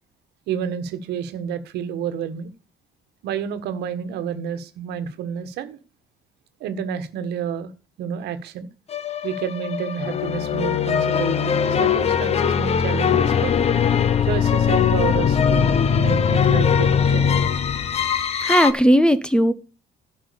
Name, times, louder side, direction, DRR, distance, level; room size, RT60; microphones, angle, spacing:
voice 1, 0.5-2.5 3.2-5.8 6.6-7.7 8.0-8.7 9.2-13.5 14.2-17.4, right 8 dB, 80° right, 9 dB, 1.4 m, -29 dB
sound 1, 8.9-18.7, left 7 dB, 40° left, 0.9 m, -20 dB
voice 2, 18.4-19.5, equal, 5° left, 15 dB, 0.8 m, -16 dB
10.5 x 6.0 x 6.8 m, 0.34 s
cardioid pair, 110°, 17 cm